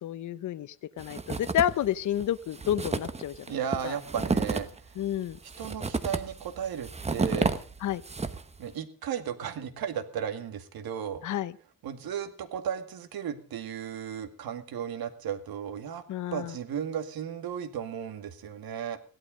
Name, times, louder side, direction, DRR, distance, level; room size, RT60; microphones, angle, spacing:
voice 1, 0.0-3.6 3.8-3.9 5.0-5.4 7.8-8.0 11.2-11.5 16.1-16.5, left 11 dB, 55° left, 14 dB, 0.7 m, -30 dB
sound 1, 1.0-1.9 2.2-2.3 2.5-8.6, right 3 dB, 15° right, 1.0 m, -31 dB
voice 2, 3.5-4.7 5.6-7.5 8.6-11.2 11.8-16.0 16.3-19.0, right 8 dB, 75° right, 8 dB, 2.1 m, -35 dB
17.0 x 12.0 x 5.1 m, 0.39 s
cardioid pair, 140°, 36 cm